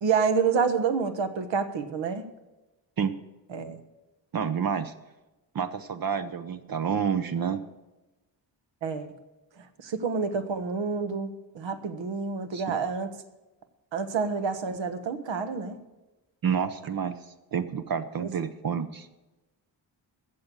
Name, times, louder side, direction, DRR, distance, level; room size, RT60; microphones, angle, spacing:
voice 1, 0.0-2.3 3.5-3.8 8.8-9.1 9.8-13.1 13.9-15.8 18.2-18.3, right 5 dB, 75° right, 9 dB, 1.4 m, -28 dB
voice 2, 4.3-4.9 5.5-7.6 12.5-12.8 16.4-17.1 17.5-19.1, right 7 dB, 50° right, 10 dB, 0.7 m, -29 dB
15.5 x 6.7 x 7.3 m, 1.1 s
wide cardioid pair, 130°, 45 cm